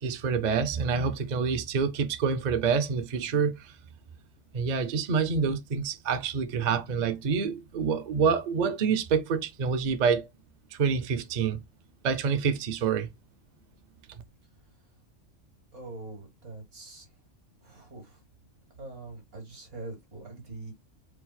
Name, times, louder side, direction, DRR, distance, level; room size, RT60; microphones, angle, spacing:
voice 1, 0.0-3.7 4.5-10.3 10.7-11.6 12.0-13.1, right 6 dB, 50° right, 0.6 m, -27 dB
voice 2, 15.7-17.1 17.6-18.2 18.7-20.7, right 2 dB, 75° right, 2.3 m, -43 dB
4.5 x 2.0 x 4.0 m
omnidirectional pair, 1.3 m